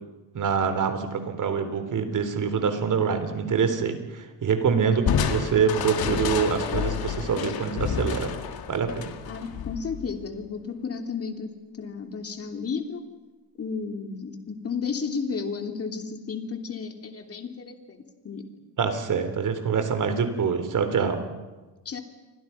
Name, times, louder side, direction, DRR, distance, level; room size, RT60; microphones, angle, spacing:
voice 1, 0.3-8.3 8.7-9.1 18.8-21.2, right 6 dB, 50° right, 8 dB, 3.6 m, -25 dB
voice 2, 4.9-5.3 9.3-13.0 13.6-18.4 21.8-22.0, left 5 dB, 35° left, 5 dB, 3.0 m, -33 dB
Crushing, 5.1-10.4, left 7 dB, 60° left, 2.2 m, -29 dB
29.5 x 25.0 x 5.8 m, 1.2 s
cardioid pair, 130°, 40 cm